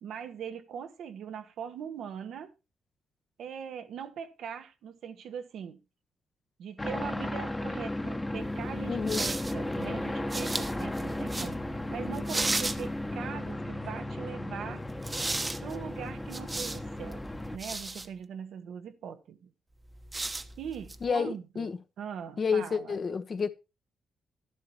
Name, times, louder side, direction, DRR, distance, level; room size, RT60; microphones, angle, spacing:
voice 1, 0.0-2.5 3.4-5.8 6.6-14.8 15.6-17.2 17.5-19.5 20.6-21.7 22.0-23.0, right 8 dB, 80° right, 1.5 m, -41 dB
sound 1, 6.8-17.6, left 1 dB, 15° left, 1.3 m, -35 dB
sound 2, 8.4-13.4 14.8-18.1 19.9-21.1, right 2 dB, 25° right, 1.2 m, -36 dB
voice 2, 8.8-9.3 21.0-21.8 22.4-23.5, left 5 dB, 50° left, 1.2 m, -30 dB
12.0 x 11.5 x 3.1 m
supercardioid pair, 60°, 0 cm